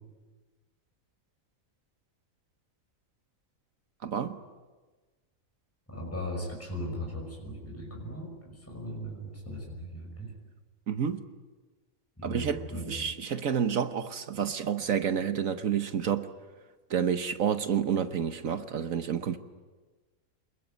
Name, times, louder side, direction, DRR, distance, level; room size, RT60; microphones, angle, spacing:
voice 1, 4.0-4.4 10.9-11.2 12.2-16.3 16.9-19.4, right 8 dB, 70° right, 1.4 m, -29 dB
voice 2, 5.9-10.3 12.2-12.9, equal, 10° left, 5.9 m, -38 dB
27.5 x 21.0 x 9.3 m
omnidirectional pair, 1.5 m